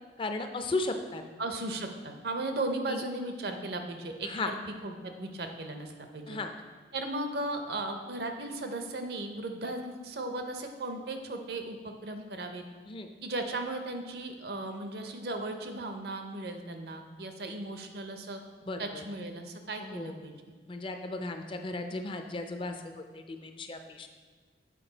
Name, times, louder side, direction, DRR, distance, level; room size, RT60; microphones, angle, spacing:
voice 1, 0.2-1.2 2.9-3.0 4.2-4.5 6.3-6.5 12.8-13.1 18.7-19.0 19.8-20.1 20.7-24.1, left 2 dB, 30° left, 6 dB, 0.5 m, -35 dB
voice 2, 1.4-4.6 4.8-6.4 6.9-12.6 13.2-18.4 18.8-20.3, right 2 dB, 60° right, 6 dB, 0.7 m, -36 dB
7.6 x 4.7 x 3.9 m, 1.5 s
head